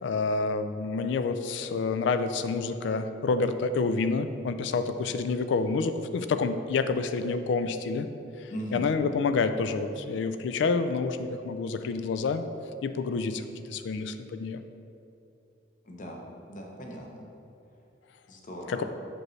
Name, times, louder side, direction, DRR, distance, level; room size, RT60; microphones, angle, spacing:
voice 1, 0.0-8.1 8.4-12.4 12.8-14.6 18.7-18.8, left 4 dB, 75° left, 10 dB, 0.3 m, -28 dB
voice 2, 8.5-8.9 15.8-16.2 16.5-17.3 18.3-18.8, equal, 45° left, 0 dB, 0.8 m, -39 dB
6.0 x 5.1 x 3.2 m, 2.8 s
head